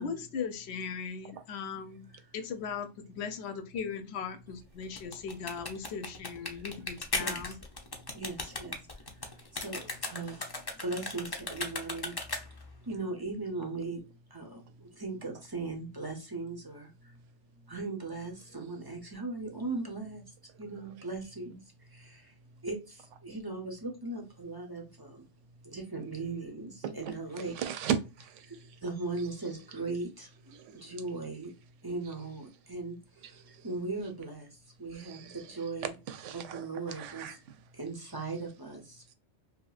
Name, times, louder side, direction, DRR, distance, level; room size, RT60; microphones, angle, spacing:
voice 1, 0.0-2.1 2.3-7.5, left 6 dB, 65° left, 0.8 m, -38 dB
sound 1, 4.8-12.7, left 3 dB, 35° left, 0.4 m, -37 dB
voice 2, 7.9-12.4 12.8-17.3 17.5-25.2 25.5-27.7 28.4-31.5 31.8-34.5 34.8-35.9 36.3-37.4 37.7-39.0, right 3 dB, 25° right, 0.5 m, -39 dB
voice 3, 26.8-27.1 27.5-28.5 30.5-30.8 33.5-33.7 34.9-35.4 36.1-37.3, right 8 dB, 80° right, 0.9 m, -36 dB
2.8 x 2.7 x 2.3 m
omnidirectional pair, 1.3 m